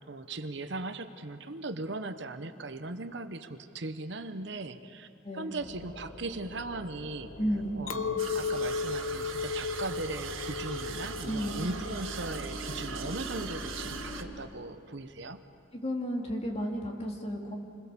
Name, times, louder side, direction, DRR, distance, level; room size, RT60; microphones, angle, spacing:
voice 1, 0.1-5.1 5.3-7.4 7.8-15.4, right 2 dB, 60° right, 9 dB, 0.9 m, -38 dB
voice 2, 5.2-5.5 7.4-7.8 11.3-11.6 15.7-17.6, equal, 30° left, 0 dB, 2.6 m, -33 dB
sound 1, 5.6-14.2, equal, 70° left, 4.1 m, -43 dB
Chink clink, 7.9-13.2, left 5 dB, 90° left, 0.9 m, -35 dB
sound 2, 8.2-14.2, right 7 dB, 85° right, 1.6 m, -42 dB
27.5 x 21.5 x 7.0 m, 3.0 s
head